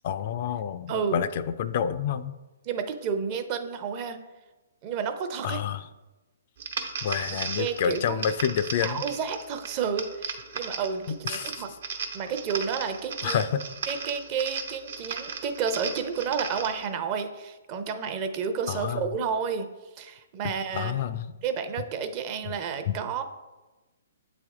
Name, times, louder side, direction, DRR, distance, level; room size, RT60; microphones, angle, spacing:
voice 1, 0.0-2.3 5.4-5.8 7.0-9.0 11.1-11.5 13.2-13.6 18.7-19.1 20.7-21.3 22.9-23.0, left 8 dB, 50° left, 12 dB, 0.3 m, -28 dB
voice 2, 2.6-4.2 4.8-5.6 7.6-8.2 8.8-11.7 12.1-13.4 13.9-19.7 20.0-21.0 21.4-23.2, right 6 dB, 35° right, 8 dB, 0.6 m, -31 dB
sound 1, 6.6-16.9, right 5 dB, 65° right, 0.8 m, -36 dB
8.2 x 3.4 x 3.6 m, 1.1 s
hypercardioid pair, 140°, 0 cm